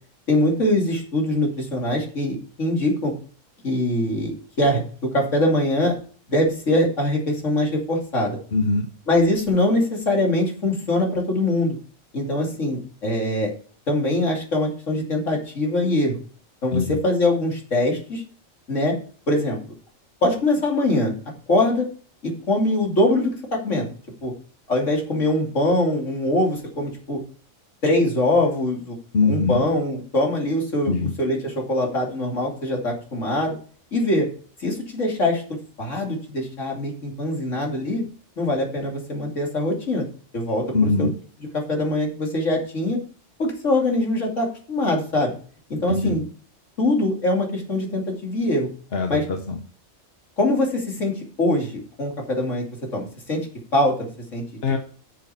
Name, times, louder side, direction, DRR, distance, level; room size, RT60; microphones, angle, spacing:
voice 1, 0.3-3.1 3.6-4.8 5.1-6.0 6.3-8.4 9.1-11.7 12.1-13.5 13.9-16.2 16.6-18.2 18.7-19.0 19.3-19.6 20.2-21.1 21.5-21.9 22.2-23.9 24.2-24.3 24.7-27.2 27.8-29.0 29.2-33.5 33.9-34.3 34.6-35.4 35.8-38.0 38.4-40.0 40.3-41.1 41.5-43.0 43.4-45.3 45.7-46.2 46.8-48.7 49.1-49.2 50.4-52.6 52.9-53.5 53.7-54.4, left 1 dB, 65° left, 0 dB, 3.0 m, -23 dB
voice 2, 8.5-8.9 16.7-17.0 29.1-29.6 30.9-31.1 40.7-41.1 45.9-46.2 48.9-49.6 54.6-54.8, left 4 dB, 50° left, 5 dB, 1.2 m, -22 dB
9.7 x 7.0 x 4.4 m, 0.42 s
omnidirectional pair, 1.4 m